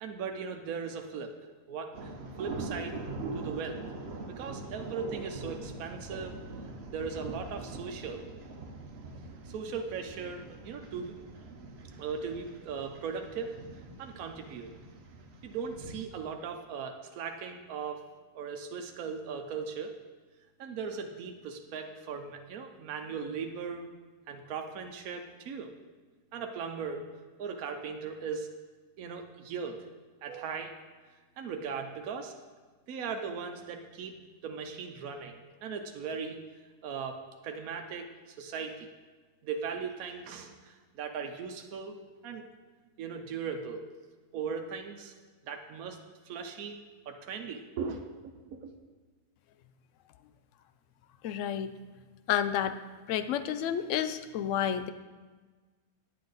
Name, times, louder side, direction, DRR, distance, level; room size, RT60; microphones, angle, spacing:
voice 1, 0.0-1.3 1.7-2.1 2.4-3.0 3.3-3.8 4.3-6.4 6.9-8.5 8.9-9.0 9.5-11.2 12.0-13.6 14.0-14.7 15.4-18.0 18.3-19.9 20.6-23.9 24.3-25.7 26.3-27.1 27.4-28.5 29.0-29.9 30.2-30.7 31.4-32.3 32.9-36.4 36.8-38.9 39.4-42.5 43.0-43.8 44.3-45.1 45.4-46.8 47.1-48.7, right 5 dB, 70° right, 4 dB, 1.1 m, -38 dB
sound 1, 1.9-16.0, right 3 dB, 50° right, 1.0 m, -43 dB
voice 2, 51.2-51.7 52.3-52.8 53.1-54.9, left 9 dB, 70° left, 11 dB, 0.8 m, -30 dB
10.0 x 8.4 x 4.0 m, 1.4 s
omnidirectional pair, 1.6 m